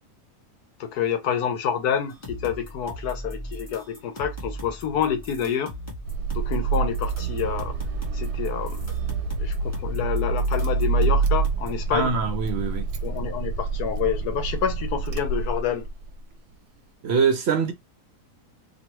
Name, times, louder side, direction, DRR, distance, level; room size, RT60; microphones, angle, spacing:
voice 1, 0.8-5.7 6.3-7.8 8.1-8.9 9.4-12.2 13.0-15.9, left 8 dB, 85° left, 1.2 m, -28 dB
sound 1, 2.1-11.8, right 1 dB, 10° left, 0.9 m, -38 dB
Car / Engine starting, 6.0-16.1, right 4 dB, 85° right, 1.2 m, -27 dB
voice 2, 11.9-12.9 17.0-17.7, right 5 dB, 60° right, 0.7 m, -23 dB
3.1 x 2.3 x 2.9 m
omnidirectional pair, 1.6 m